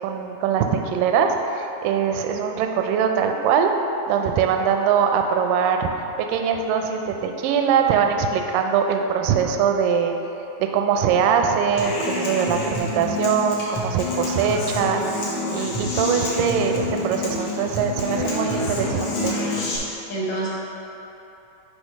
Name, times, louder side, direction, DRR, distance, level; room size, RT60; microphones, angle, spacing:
voice 1, 0.0-3.7 4.1-5.9 6.2-10.2 10.6-15.3 15.5-19.4, right 7 dB, 80° right, 4 dB, 2.0 m, -22 dB
Human voice / Acoustic guitar, 11.8-19.8, left 2 dB, 85° left, 1.3 m, -27 dB
voice 2, 18.1-19.0 20.1-20.5, right 1 dB, 65° left, -6 dB, 1.8 m, -28 dB
8.2 x 3.3 x 5.1 m, 3.0 s
omnidirectional pair, 4.2 m